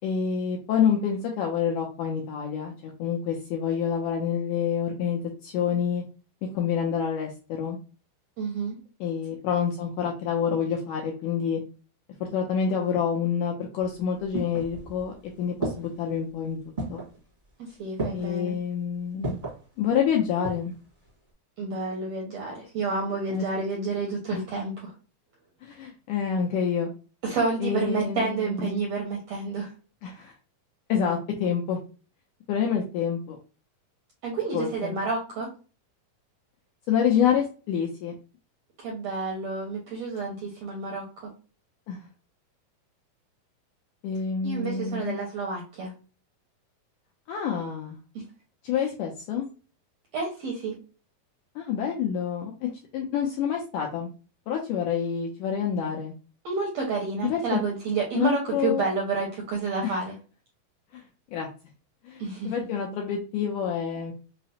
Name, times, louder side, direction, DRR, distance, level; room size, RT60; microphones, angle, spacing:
voice 1, 0.0-6.0 6.4-7.8 9.0-11.6 12.2-16.6 16.9-17.0 18.1-19.3 19.8-20.7 23.3-23.5 24.3-24.4 25.6-26.9 27.6-28.8 30.0-30.3 30.9-31.8 32.5-33.4 34.5-35.0 36.9-38.1 41.9-42.1 44.0-45.2 47.3-48.0 48.6-49.5 51.6-54.1 54.5-56.1 57.2-57.6 58.1-58.8 59.8-60.0 60.9-61.0 61.3-61.5 62.0-64.1, left 7 dB, 80° left, 0 dB, 1.8 m, -27 dB
voice 2, 8.4-8.8 17.6-18.6 21.6-24.9 27.2-29.7 34.2-35.5 38.8-41.0 44.4-45.9 50.1-50.8 56.4-60.1 62.2-62.5, right 3 dB, 80° right, -2 dB, 1.5 m, -29 dB
sound 1, 13.8-15.1 15.6-16.1 16.8-17.2 18.0-18.4 19.2-19.6 20.2-20.8 21.1-21.2, right 2 dB, 40° right, 0.5 m, -33 dB
5.6 x 2.0 x 2.7 m, 0.36 s
omnidirectional pair, 4.2 m